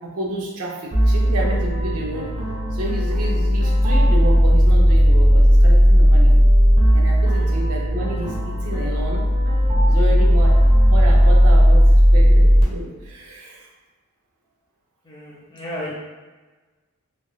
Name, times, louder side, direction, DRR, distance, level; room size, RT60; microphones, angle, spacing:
voice 1, 0.0-2.3 2.7-6.3 6.9-9.2 9.8-10.6 10.9-13.7, right 1 dB, 85° right, -1 dB, 0.6 m, -30 dB
sound 1, 0.9-12.6, equal, 25° right, 0.7 m, -15 dB
voice 2, 15.0-15.9, left 1 dB, 20° left, -7 dB, 0.8 m, -34 dB
3.4 x 2.4 x 2.3 m, 1.3 s
head